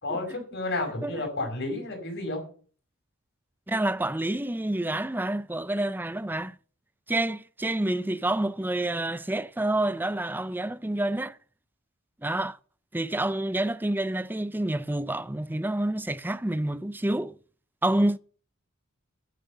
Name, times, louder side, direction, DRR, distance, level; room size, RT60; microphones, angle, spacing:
voice 1, 0.0-2.4, left 2 dB, 55° left, 5.3 m, -31 dB
voice 2, 3.7-6.6 7.1-11.4 12.2-12.6 12.9-17.4 17.8-18.2, right 1 dB, 10° right, 0.5 m, -28 dB
10.0 x 9.5 x 6.9 m
head